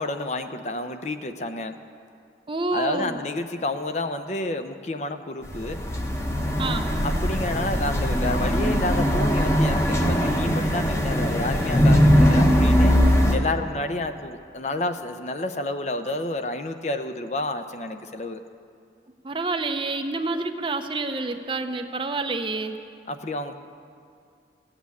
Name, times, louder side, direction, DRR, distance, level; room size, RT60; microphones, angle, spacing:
voice 1, 0.0-1.8 2.7-5.8 7.0-18.4 23.1-23.6, left 2 dB, 40° left, 8 dB, 0.6 m, -30 dB
voice 2, 2.5-3.2 6.6-6.9 19.2-22.8, right 3 dB, 30° right, 7 dB, 0.7 m, -28 dB
sound 1, 5.4-13.4, equal, 15° left, 1.0 m, -20 dB
16.5 x 8.9 x 8.3 m, 2.4 s
head